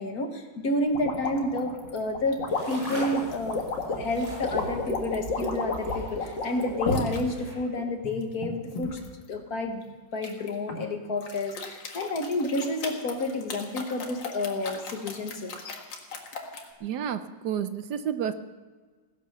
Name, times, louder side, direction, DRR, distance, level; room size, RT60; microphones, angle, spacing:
voice 1, 0.0-9.8 10.1-15.8, left 1 dB, 55° left, 5 dB, 1.9 m, -30 dB
sound 1, 0.9-7.2 7.8-9.1 10.2-10.8 11.2-16.7, left 3 dB, 80° left, 2.4 m, -32 dB
sound 2, 2.5-7.5, equal, 45° right, 7.2 m, -41 dB
voice 2, 16.8-18.3, right 9 dB, 70° right, 11 dB, 1.2 m, -30 dB
17.0 x 11.0 x 6.7 m, 1.4 s
omnidirectional pair, 2.0 m